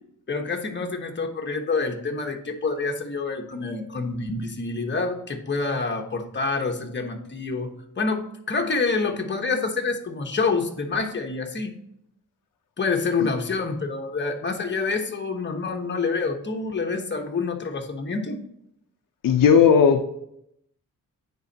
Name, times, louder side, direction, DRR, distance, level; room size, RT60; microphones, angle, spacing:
voice 1, 0.3-11.8 12.8-18.4, left 4 dB, 35° left, 3 dB, 1.1 m, -27 dB
voice 2, 19.2-20.1, left 7 dB, 80° left, 6 dB, 0.7 m, -16 dB
9.5 x 3.8 x 2.8 m, 0.75 s
cardioid pair, 95°, 32 cm